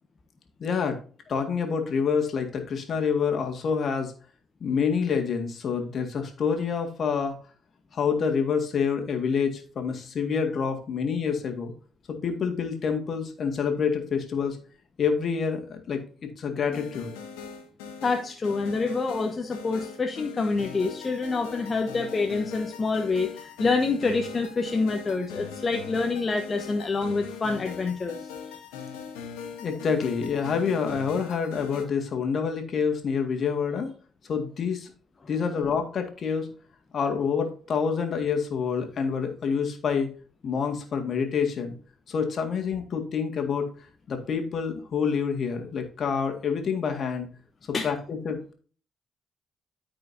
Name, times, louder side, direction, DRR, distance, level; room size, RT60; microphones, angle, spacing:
voice 1, 0.6-1.0 1.3-4.1 4.6-7.4 7.9-11.7 12.1-14.6 15.0-17.1 29.6-33.9 34.2-34.9 35.3-36.5 36.9-40.1 40.4-41.7 42.1-43.7 44.1-47.3 47.8-48.5, left 6 dB, 55° left, 4 dB, 2.0 m, -27 dB
sound 1, 16.7-31.8, left 6 dB, 80° left, 1.6 m, -40 dB
voice 2, 18.0-28.6 47.7-47.9, left 4 dB, 35° left, 4 dB, 1.1 m, -27 dB
13.5 x 4.9 x 2.7 m, 0.41 s
hypercardioid pair, 40°, 0 cm